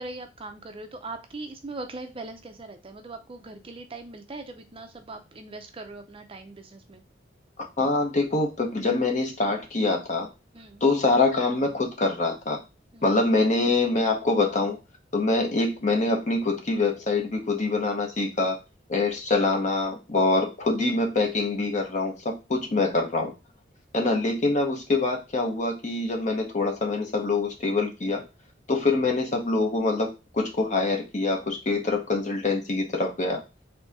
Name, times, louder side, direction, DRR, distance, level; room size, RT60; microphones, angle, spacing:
voice 1, 0.0-7.0 10.5-10.8 12.9-13.1 22.5-22.8, right 2 dB, 30° right, 6 dB, 0.5 m, -40 dB
voice 2, 7.8-10.3 10.8-12.6 13.0-14.8 15.1-18.6 18.9-23.3 23.9-28.2 28.7-33.4, left 3 dB, 40° left, 3 dB, 0.9 m, -25 dB
4.0 x 2.8 x 3.6 m, 0.27 s
head